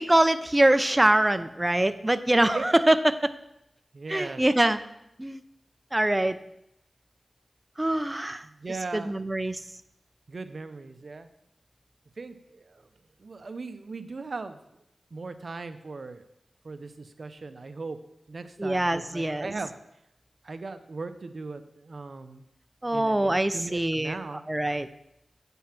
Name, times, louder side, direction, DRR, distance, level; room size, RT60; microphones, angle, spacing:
voice 1, 0.0-3.3 4.1-4.8 5.2-5.4 5.9-6.4 7.8-8.4 8.9-9.6 18.6-19.5 22.8-24.2 24.5-24.9, right 1 dB, 20° right, 12 dB, 0.6 m, -23 dB
voice 2, 3.9-4.5 8.4-9.3 10.3-11.3 12.2-12.9 13.2-14.6 15.1-16.2 16.6-18.0 18.3-19.7 20.4-22.4 22.9-24.4, right 3 dB, 65° right, 10 dB, 0.7 m, -38 dB
8.5 x 5.4 x 5.9 m, 0.81 s
cardioid pair, 55°, 0 cm